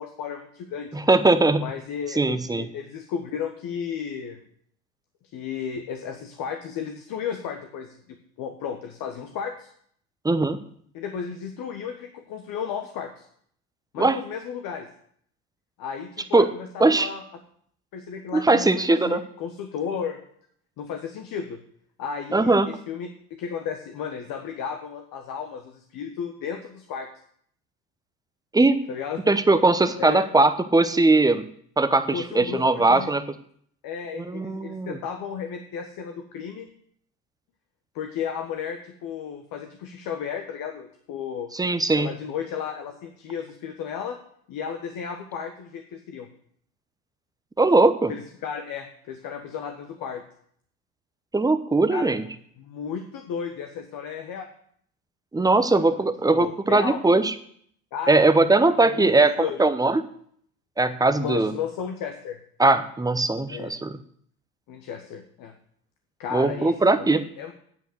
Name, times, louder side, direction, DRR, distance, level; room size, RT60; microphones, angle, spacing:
voice 1, 0.0-1.1 1.6-4.4 5.3-9.7 10.9-13.2 13.9-14.9 15.8-17.4 17.9-20.2 20.8-21.6 22.0-27.1 28.9-29.3 30.0-30.2 32.1-33.1 33.8-36.7 37.9-41.5 41.9-44.2 44.5-46.3 48.1-50.2 51.9-52.1 52.6-54.5 55.5-56.0 56.3-57.0 57.9-58.2 58.7-59.1 59.4-59.6 61.2-62.4 63.5-63.7 64.7-65.5 66.2-67.5, left 7 dB, 45° left, 6 dB, 1.3 m, -34 dB
voice 2, 0.9-1.6 2.2-2.7 10.2-10.6 14.0-14.2 16.3-16.5 16.8-17.1 18.3-19.2 22.3-22.7 28.5-28.8 29.3-31.4 31.8-33.2 34.1-35.0 41.5-42.1 47.6-48.1 51.3-52.2 55.3-57.3 58.1-59.3 59.6-60.0 60.8-61.5 62.6-64.0 66.3-67.2, right 2 dB, 10° right, 11 dB, 0.9 m, -20 dB
9.1 x 8.1 x 6.4 m, 0.63 s
hypercardioid pair, 75°, 46 cm